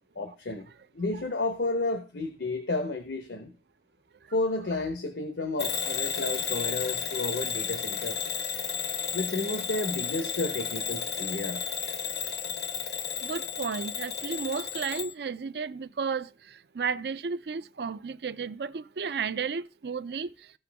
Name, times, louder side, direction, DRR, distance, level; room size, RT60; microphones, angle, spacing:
voice 1, 0.1-0.7 0.9-3.5 4.3-8.2 9.1-11.6, left 2 dB, 90° left, 1.1 m, -31 dB
Bell / Alarm, 5.6-15.1, left 7 dB, 70° left, 0.8 m, -33 dB
voice 2, 13.2-16.3 16.8-20.3, right 5 dB, 70° right, 0.5 m, -33 dB
15.5 x 5.9 x 3.5 m
head